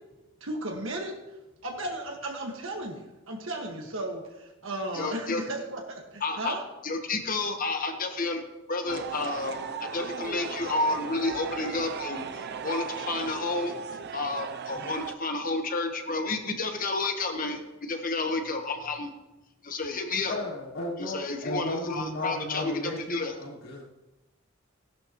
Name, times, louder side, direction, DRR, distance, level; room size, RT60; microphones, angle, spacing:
voice 1, 0.4-1.2 1.6-6.6, right 1 dB, 75° right, 1 dB, 1.7 m, -35 dB
voice 2, 4.9-5.4 6.2-6.6 6.8-8.4 8.7-13.8 14.1-19.1 19.6-20.4 21.0-23.3, left 3 dB, 45° left, 5 dB, 1.2 m, -31 dB
sound 1, 8.9-15.1, right 6 dB, 55° right, 0.5 m, -37 dB
voice 3, 20.2-23.8, left 1 dB, 75° left, -7 dB, 4.5 m, -34 dB
16.0 x 11.5 x 3.1 m, 1.0 s
head